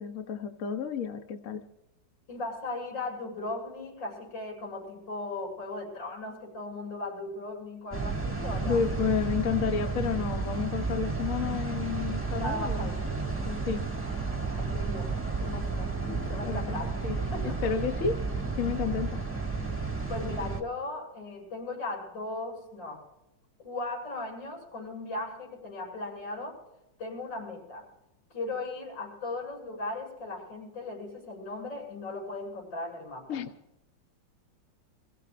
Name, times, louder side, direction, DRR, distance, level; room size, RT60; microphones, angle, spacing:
voice 1, 0.0-1.6 8.6-13.9 16.0-16.6 17.0-18.2 18.6-19.2 33.3-33.5, left 6 dB, 55° left, 1.0 m, -31 dB
voice 2, 2.3-8.8 12.3-13.0 14.2-16.0 16.3-16.9 17.3-17.7 20.1-23.0 23.6-26.6 27.0-27.9 28.3-33.3, left 2 dB, 70° left, 8.8 m, -37 dB
sound 1, 7.9-20.6, right 4 dB, 5° right, 1.6 m, -32 dB
28.0 x 16.0 x 2.5 m
omnidirectional pair, 2.1 m